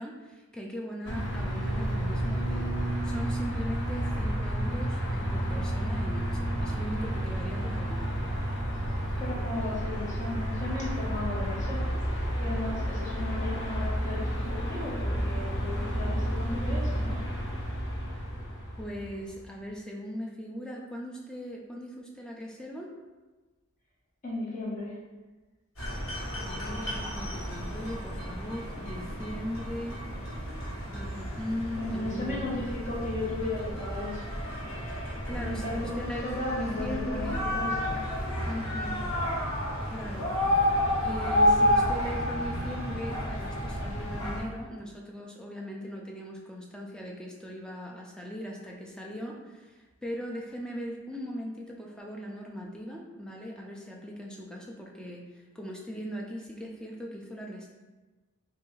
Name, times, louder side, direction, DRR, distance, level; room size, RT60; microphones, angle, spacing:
voice 1, 0.0-2.7 3.0-8.1 18.8-22.9 26.4-30.0 30.9-32.6 35.0-37.4 38.5-39.0 39.9-40.3 41.0-57.7, equal, 5° left, -1 dB, 0.3 m, -39 dB
sound 1, 1.0-19.4, equal, 55° left, 0.6 m, -31 dB
voice 2, 9.2-11.8 12.4-17.2 24.2-24.9 31.8-34.2 35.4-38.0, left 2 dB, 35° left, -7 dB, 1.0 m, -35 dB
sound 2, 25.8-44.4, left 1 dB, 75° left, 1.0 m, -31 dB
3.4 x 2.3 x 3.1 m, 1.2 s
head